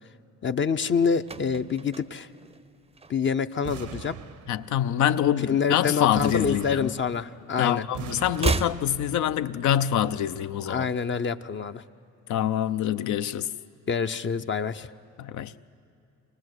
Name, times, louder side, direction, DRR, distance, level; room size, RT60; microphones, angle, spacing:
voice 1, 0.4-2.3 3.1-4.2 5.4-7.8 10.7-11.8 13.9-14.9, left 6 dB, 40° left, 0.6 m, -26 dB
sound 1, 0.9-3.6 3.8-4.1 4.4-5.9 6.2-7.5 7.8-9.9 10.1-10.2, right 3 dB, 20° right, 0.6 m, -34 dB
sound 2, 3.6-4.9 6.2-7.4 7.9-9.1, right 8 dB, 80° right, 1.0 m, -40 dB
voice 2, 4.5-6.9 7.6-10.9 12.3-13.5 15.2-15.5, left 10 dB, 75° left, 0.7 m, -25 dB
24.0 x 18.5 x 8.0 m
cardioid pair, 90°, 30 cm